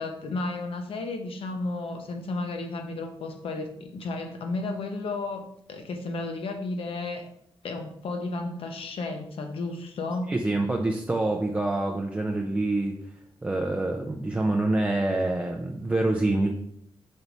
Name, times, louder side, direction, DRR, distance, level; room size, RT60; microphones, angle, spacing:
voice 1, 0.0-7.2 7.6-10.3, left 2 dB, 65° left, 5 dB, 0.9 m, -33 dB
voice 2, 10.3-12.9 13.4-16.5, right 2 dB, 15° right, 1 dB, 0.5 m, -26 dB
5.5 x 4.7 x 4.0 m, 0.72 s
wide cardioid pair, 170°, 10 cm